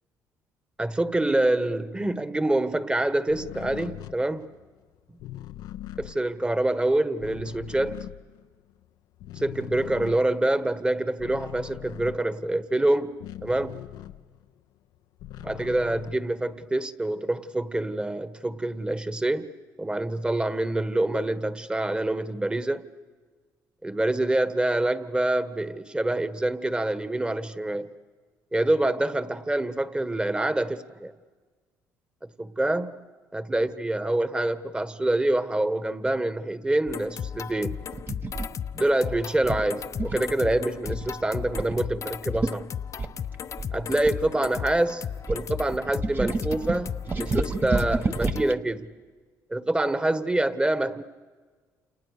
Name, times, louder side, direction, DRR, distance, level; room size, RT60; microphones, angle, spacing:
voice 1, 0.8-4.5 6.0-8.1 9.4-13.7 15.4-19.5 19.8-22.8 23.8-27.9 28.5-31.1 32.4-33.0 33.3-37.8 38.7-42.7 43.7-48.9 49.5-51.0, right 1 dB, 15° right, 1.5 m, -26 dB
sound 1, 3.3-8.9 9.1-14.6 14.9-16.8, left 13 dB, 80° left, 0.8 m, -42 dB
sound 2, 36.9-48.6, left 8 dB, 50° left, 0.9 m, -35 dB
sound 3, 37.9-38.5 39.4-40.3 40.8-41.1 41.6-41.8 42.1-42.2 42.3-42.6 43.0-44.8 45.3-48.6, right 3 dB, 30° right, 1.2 m, -30 dB
29.0 x 28.5 x 6.7 m
supercardioid pair, 80°, 7 cm